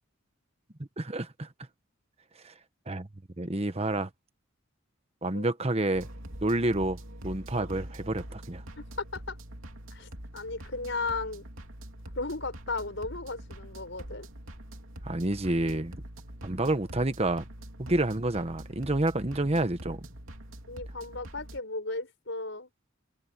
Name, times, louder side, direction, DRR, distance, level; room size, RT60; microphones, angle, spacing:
voice 1, 1.0-1.5 2.4-2.5 2.9-3.1 3.4-4.1 5.2-6.1 6.4-7.0 7.2-8.6 15.0-16.0 16.4-17.4 17.8-20.1, right 2 dB, 30° right, 1.2 m, -29 dB
sound 1, 5.9-21.6, right 1 dB, 80° right, 2.9 m, -44 dB
voice 2, 9.9-11.4 12.2-14.3 20.7-22.7, left 3 dB, 60° left, 6.0 m, -35 dB
head